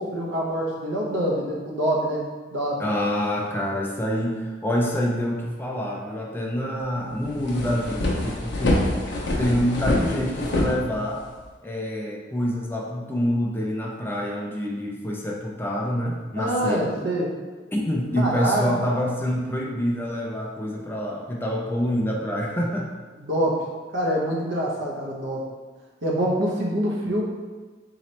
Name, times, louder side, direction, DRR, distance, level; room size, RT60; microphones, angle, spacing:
voice 1, 0.0-2.2 2.5-2.8 16.4-17.3 18.2-19.0 23.2-23.7 23.9-25.4 26.0-27.2, right 1 dB, 70° right, -2 dB, 0.8 m, -25 dB
voice 2, 2.8-8.9 9.4-11.2 11.6-16.8 17.7-22.9, equal, 10° left, -2 dB, 0.4 m, -26 dB
sound 1, 6.8-6.9 7.2-11.4, left 1 dB, 65° left, 0.7 m, -25 dB
3.9 x 2.9 x 3.1 m, 1.4 s
head